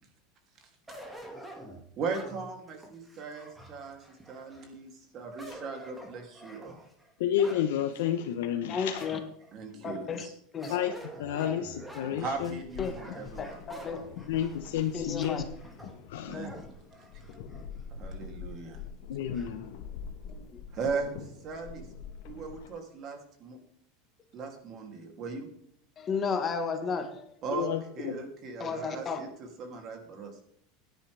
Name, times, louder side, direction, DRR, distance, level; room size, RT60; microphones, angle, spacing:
sound 1, 0.9-4.7 5.2-7.7 8.2-8.3 9.0-9.6 10.6-17.7 18.1-18.2 19.3-19.7, equal, 5° right, 2.1 m, -47 dB
voice 1, 2.0-4.0 4.3-6.9 9.1-9.2 9.5-10.3 10.7-10.8 12.2-13.6 16.3-16.6 17.9-18.8 20.7-21.1 21.4-21.8 22.3-23.6 24.3-25.5 27.4-30.3, right 4 dB, 35° right, 3 dB, 2.8 m, -38 dB
voice 2, 7.2-9.0 9.7-9.8 10.7-10.9 11.2-12.6 14.3-15.4 16.1-16.4 19.1-19.7 27.5-28.2, left 10 dB, 85° left, 5 dB, 0.9 m, -30 dB
voice 3, 8.7-9.2 9.8-10.3 10.5-10.7 11.4-11.6 12.8-13.0 13.7-14.0 14.9-15.4 16.3-16.5 20.3-20.6 26.0-27.4 28.6-29.2, left 5 dB, 25° left, 6 dB, 1.5 m, -33 dB
sound 2, 12.3-22.8, left 5 dB, 60° left, 1.4 m, -45 dB
16.0 x 10.5 x 3.4 m, 0.69 s
supercardioid pair, 150°, 0 cm